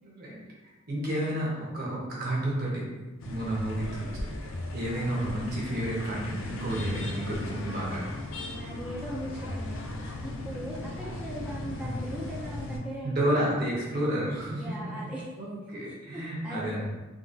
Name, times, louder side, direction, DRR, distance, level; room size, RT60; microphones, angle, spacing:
voice 1, 0.0-2.9 3.2-4.3 4.7-8.0 13.0-14.6 15.4-16.9, right 1 dB, 45° right, -4 dB, 0.9 m, -31 dB
sound 1, 3.2-12.8, left 1 dB, 65° left, 0.4 m, -36 dB
voice 2, 8.5-9.8 10.2-13.2 14.6-15.3 16.1-16.7, equal, 5° right, -7 dB, 0.3 m, -39 dB
3.8 x 2.3 x 2.6 m, 1.1 s
head